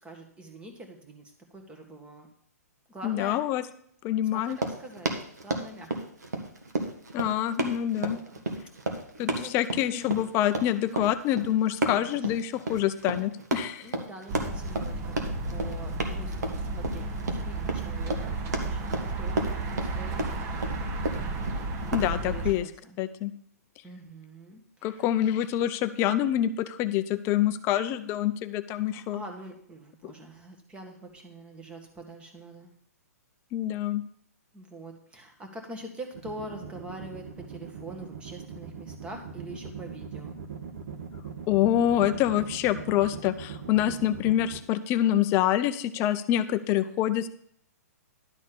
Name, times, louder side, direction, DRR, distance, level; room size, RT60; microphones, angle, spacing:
voice 1, 0.0-2.3 2.9-3.4 4.3-5.1 5.4-6.1 8.2-8.4 9.2-10.3 11.8-12.3 13.8-16.4 16.7-17.0 17.4-20.2 21.9-23.0 23.8-25.0 28.9-32.7 34.5-40.4, right 1 dB, 10° right, 3 dB, 1.7 m, -44 dB
voice 2, 3.0-3.6 4.0-4.6 7.1-8.2 9.2-13.9 21.9-22.6 23.0-23.3 24.8-29.2 30.0-30.1 33.5-34.0 41.5-47.3, left 12 dB, 30° left, 12 dB, 0.5 m, -26 dB
Run, 4.4-22.1, right 2 dB, 85° right, 1.7 m, -32 dB
sound 1, 14.3-22.5, right 2 dB, 30° right, 1.2 m, -33 dB
sound 2, 36.1-44.6, right 7 dB, 60° right, 1.5 m, -40 dB
11.5 x 4.1 x 7.0 m, 0.64 s
hypercardioid pair, 135°, 9 cm